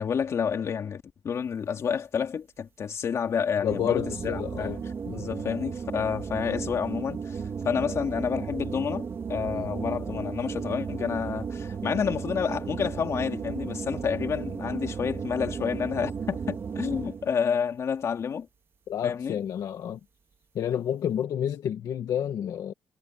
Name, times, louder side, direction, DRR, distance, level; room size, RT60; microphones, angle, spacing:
voice 1, 0.0-4.8 5.1-18.5 19.0-19.4, left 7 dB, 40° left, 3.0 m, -29 dB
voice 2, 3.6-5.3 9.5-9.7 18.9-20.0 20.6-22.7, left 9 dB, 60° left, 1.7 m, -30 dB
sound 1, 3.7-17.4, right 6 dB, 35° right, 3.8 m, -34 dB
cardioid pair, 160°, 7 cm